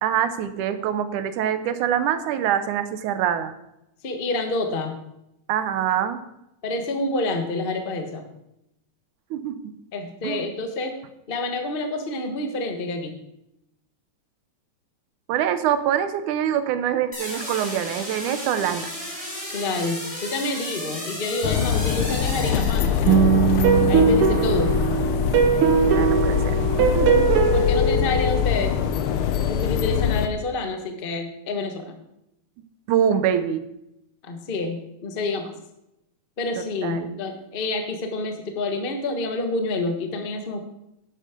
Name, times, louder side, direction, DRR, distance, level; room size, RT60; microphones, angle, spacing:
voice 1, 0.0-3.5 5.5-6.2 9.3-9.6 10.2-10.5 15.3-18.9 25.8-27.4 32.9-33.7 36.8-37.1, right 9 dB, 80° right, 11 dB, 2.3 m, -24 dB
voice 2, 4.0-5.0 6.6-8.2 9.9-10.9 11.3-13.1 19.5-23.3 23.9-24.7 27.5-28.8 29.4-32.0 34.2-35.5 36.4-40.6, left 2 dB, 60° left, 5 dB, 0.5 m, -28 dB
sound 1, 17.1-23.3, equal, 10° left, 3.6 m, -34 dB
sound 2, 21.4-30.3, left 8 dB, 75° left, 1.2 m, -23 dB
sound 3, 23.0-28.4, right 6 dB, 55° right, 1.8 m, -20 dB
11.5 x 9.3 x 5.1 m, 0.84 s
omnidirectional pair, 3.5 m